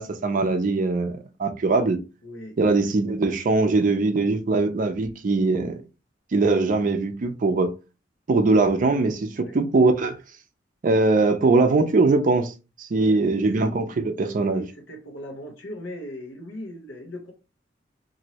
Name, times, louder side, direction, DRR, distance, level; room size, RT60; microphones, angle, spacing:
voice 1, 0.0-2.0 2.6-5.8 6.3-7.7 8.3-10.2 10.8-14.6, right 3 dB, 45° right, 0.4 m, -21 dB
voice 2, 2.2-2.9 9.4-9.6 12.9-13.5 14.4-17.3, right 1 dB, 90° left, 0.8 m, -38 dB
3.0 x 2.6 x 2.8 m
head